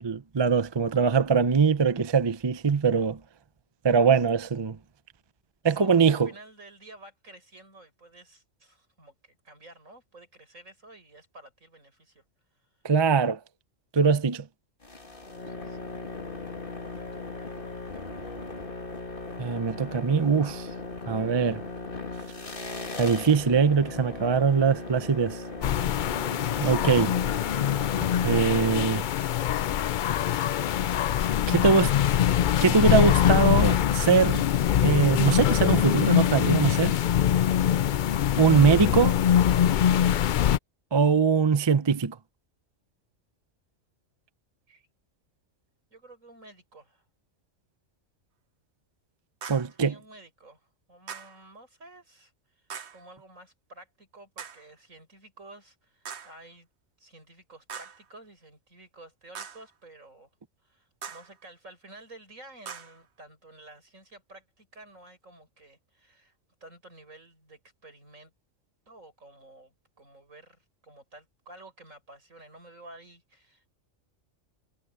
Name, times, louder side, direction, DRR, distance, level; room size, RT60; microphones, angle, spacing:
voice 1, 0.0-3.2 3.8-4.8 5.6-6.3 12.8-13.4 13.9-14.4 19.4-20.7 21.1-21.6 23.0-25.4 26.6-27.1 28.2-29.1 31.5-31.9 32.6-34.4 34.8-37.0 38.4-39.2 40.9-42.2 49.5-49.9, right 5 dB, 30° right, 0.5 m, -22 dB
voice 2, 4.1-4.5 5.6-12.2 15.4-15.8 17.1-17.5 17.9-18.8 38.1-38.5 44.7-44.9 45.9-47.1 49.6-56.7 57.0-60.3 60.6-66.3 66.6-68.3 68.9-73.7, right 2 dB, 80° right, 7.9 m, -52 dB
sound 1, 14.8-29.4, left 3 dB, 40° left, 2.2 m, -38 dB
sound 2, 25.6-40.6, left 10 dB, 70° left, 0.4 m, -23 dB
sound 3, 49.4-49.8 51.1-51.4 52.7-53.1 54.4-54.7 56.1-56.4 57.7-58.1 59.3-59.7 61.0-61.4 62.7-63.0, right 7 dB, 60° right, 1.3 m, -41 dB
omnidirectional pair, 1.3 m